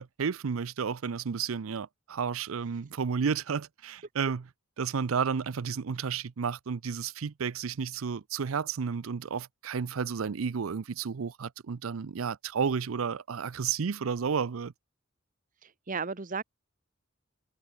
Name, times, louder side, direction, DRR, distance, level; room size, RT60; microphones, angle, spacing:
voice 1, 0.0-4.5 4.8-14.7, right 6 dB, 90° right, 0.5 m, -32 dB
voice 2, 15.6-16.4, right 5 dB, 40° right, 1.0 m, -34 dB
head